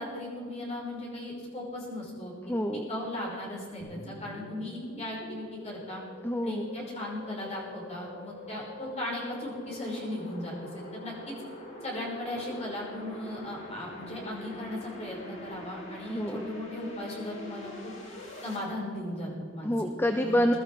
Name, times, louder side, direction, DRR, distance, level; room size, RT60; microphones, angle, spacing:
voice 1, 0.0-2.5 2.9-6.0 6.4-11.3 11.8-17.9 18.4-19.7 20.2-20.4, left 1 dB, 35° left, -3 dB, 5.5 m, -37 dB
voice 2, 2.4-2.9 6.2-6.7 16.1-16.5 19.6-20.5, equal, 10° left, 5 dB, 0.7 m, -27 dB
sound 1, 3.8-18.6, left 1 dB, 85° left, 5.2 m, -44 dB
22.0 x 13.0 x 4.9 m, 2.2 s
head